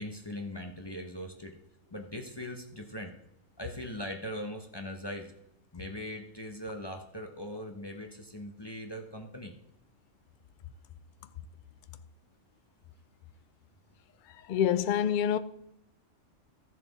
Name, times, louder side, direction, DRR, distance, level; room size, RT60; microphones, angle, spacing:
voice 1, 0.0-1.6 1.9-3.2 3.6-5.3 5.7-9.6, equal, 20° left, 0.9 m, -40 dB
voice 2, 14.3-15.4, left 9 dB, 60° left, 0.5 m, -27 dB
13.5 x 7.4 x 4.1 m
omnidirectional pair, 1.3 m